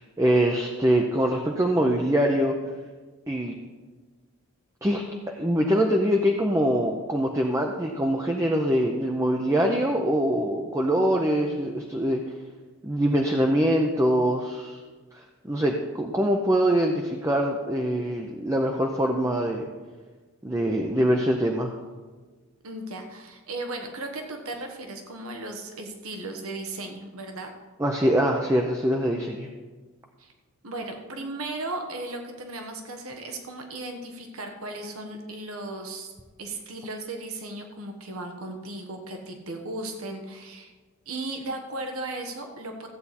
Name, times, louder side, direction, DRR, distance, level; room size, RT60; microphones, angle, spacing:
voice 1, 0.0-2.6 3.3-3.5 4.8-12.2 12.8-14.8 15.1-19.7 20.4-21.7 27.8-29.5, equal, 15° right, 2 dB, 0.6 m, -24 dB
voice 2, 22.6-27.5 30.2-30.3 30.6-36.1 36.4-40.7 41.1-42.9, right 2 dB, 80° right, 3 dB, 1.3 m, -36 dB
14.5 x 8.3 x 4.2 m, 1.4 s
head